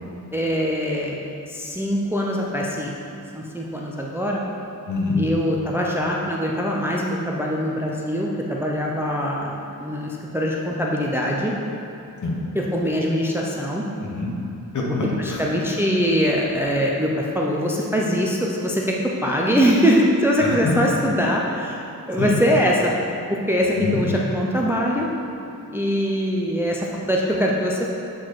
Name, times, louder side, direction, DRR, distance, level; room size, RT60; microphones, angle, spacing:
voice 1, 0.3-2.9 3.3-4.4 5.2-11.5 12.5-13.8 15.2-18.9 19.2-21.8 22.1-22.9 23.3-25.1 25.7-28.0, equal, 5° right, -2 dB, 0.4 m, -22 dB
voice 2, 4.9-5.2 12.2-12.3 14.0-14.3 14.7-15.4 20.4-20.6 22.2-22.3 23.8-24.1, left 3 dB, 55° left, -2 dB, 1.1 m, -25 dB
7.5 x 4.5 x 4.6 m, 2.8 s
wide cardioid pair, 160°, 36 cm